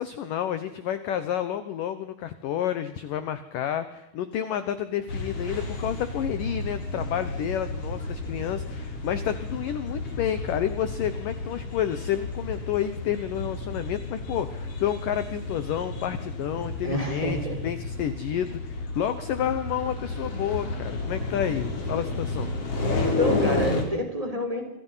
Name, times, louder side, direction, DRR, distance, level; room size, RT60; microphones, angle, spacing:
voice 1, 0.0-22.5, left 10 dB, 65° left, 11 dB, 2.4 m, -30 dB
sound 1, 5.1-23.8, left 2 dB, 35° left, 5.1 m, -32 dB
voice 2, 16.8-17.6 23.2-24.6, equal, 10° right, 3 dB, 5.3 m, -28 dB
27.5 x 27.0 x 5.8 m, 0.80 s
omnidirectional pair, 4.9 m